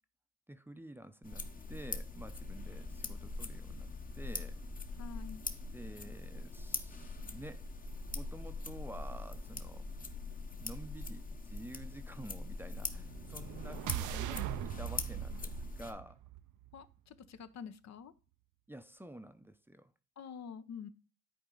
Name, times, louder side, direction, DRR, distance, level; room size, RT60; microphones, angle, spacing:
voice 1, 0.5-3.9 4.2-4.6 5.7-7.7 8.1-9.9 10.6-16.2 18.7-19.9, right 1 dB, 5° right, 0.6 m, -50 dB
sound 1, 1.2-15.9, left 3 dB, 30° left, 0.9 m, -42 dB
voice 2, 5.0-5.4 16.7-18.1 20.2-20.9, left 6 dB, 60° left, 0.8 m, -47 dB
sound 2, 12.7-16.9, right 14 dB, 80° right, 0.5 m, -41 dB
10.0 x 4.3 x 3.8 m
cardioid pair, 90°, 30 cm